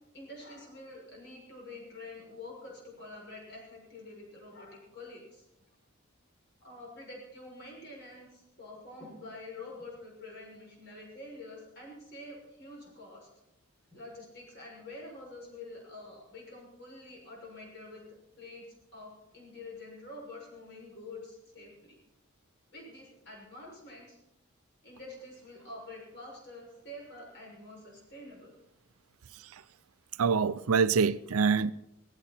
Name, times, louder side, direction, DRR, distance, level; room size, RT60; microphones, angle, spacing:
voice 1, 0.1-5.4 6.6-13.3 13.9-18.0 18.4-22.0 22.7-24.2 24.8-28.5, left 2 dB, 50° left, 6.4 m, -47 dB
voice 2, 30.2-31.7, right 5 dB, 80° right, 0.5 m, -25 dB
17.5 x 16.0 x 4.3 m
head